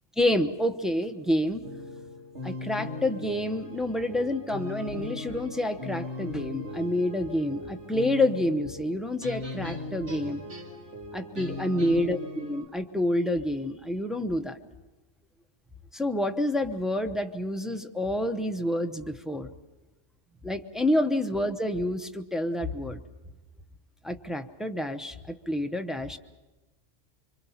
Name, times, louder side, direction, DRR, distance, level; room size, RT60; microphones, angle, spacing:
voice 1, 0.2-1.7 2.4-10.4 11.1-14.6 15.9-19.5 20.4-23.0 24.0-26.2, left 1 dB, ahead, 5 dB, 0.7 m, -28 dB
sound 1, 1.6-12.6, left 2 dB, 70° right, 2.8 m, -39 dB
25.0 x 25.0 x 5.7 m, 1.1 s
omnidirectional pair, 1.2 m